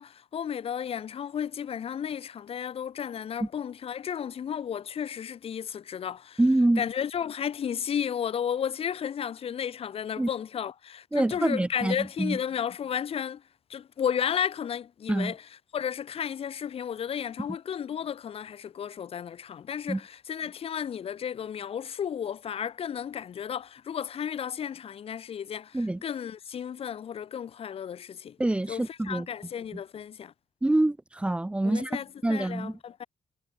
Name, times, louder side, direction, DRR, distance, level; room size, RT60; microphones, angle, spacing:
voice 1, 0.0-6.4 6.8-13.4 13.7-15.5 15.7-28.4 28.7-30.3 31.6-33.1, left 8 dB, 50° left, 2.6 m, -33 dB
voice 2, 6.4-6.8 10.2-10.3 11.1-12.4 15.1-15.3 19.9-20.0 25.7-26.0 28.4-29.3 30.6-32.0 32.2-32.7, right 2 dB, 10° right, 0.7 m, -26 dB
cardioid pair, 135°, 13 cm